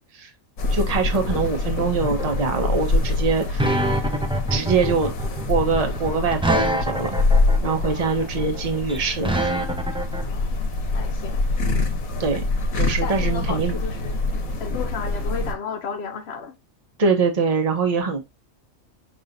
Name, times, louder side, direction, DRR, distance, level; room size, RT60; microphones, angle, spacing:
sound 1, 0.6-15.5, left 2 dB, 80° left, 1.4 m, -25 dB
voice 1, 0.7-3.7 4.5-5.1 5.5-7.1 7.6-9.5 11.9-12.4 12.7-13.8 17.0-18.2, right 4 dB, 30° right, 0.9 m, -23 dB
sound 2, 2.0-10.2, right 1 dB, 5° right, 0.4 m, -25 dB
voice 2, 10.3-10.6 10.9-11.4 13.0-14.2 14.6-16.6, left 5 dB, 55° left, 1.0 m, -33 dB
5.6 x 3.4 x 2.6 m
omnidirectional pair, 1.4 m